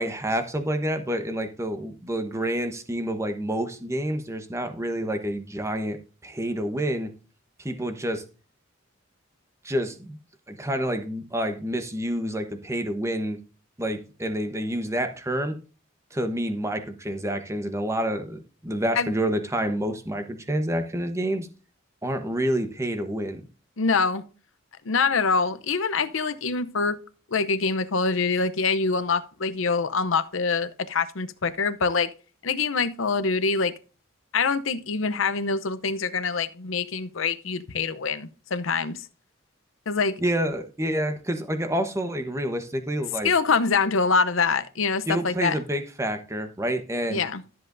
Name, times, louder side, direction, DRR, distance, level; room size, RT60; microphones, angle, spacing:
voice 1, 0.0-7.1 7.6-8.2 9.6-10.2 10.5-13.4 13.8-15.5 16.1-21.5 22.0-23.4 40.2-43.3 45.1-47.2, right 1 dB, 15° right, 1.0 m, -28 dB
voice 2, 23.8-24.2 24.8-27.0 27.3-32.1 32.4-33.7 34.3-39.0 39.9-40.2 43.2-45.6 47.1-47.4, left 4 dB, 70° left, 0.7 m, -25 dB
13.0 x 7.7 x 2.6 m
head